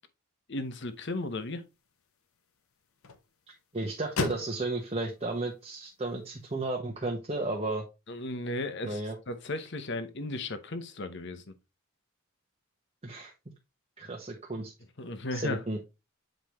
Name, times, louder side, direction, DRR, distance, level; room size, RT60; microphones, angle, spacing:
voice 1, 0.5-1.6 8.1-9.0 9.3-11.5 15.0-15.6, left 2 dB, 55° left, 1.0 m, -35 dB
sound 1, 0.6-6.8, left 4 dB, 75° left, 0.9 m, -41 dB
voice 2, 3.7-7.8 8.8-9.2 13.0-13.3 14.0-14.7 15.3-15.8, right 2 dB, 30° right, 0.9 m, -33 dB
7.7 x 5.0 x 3.1 m
head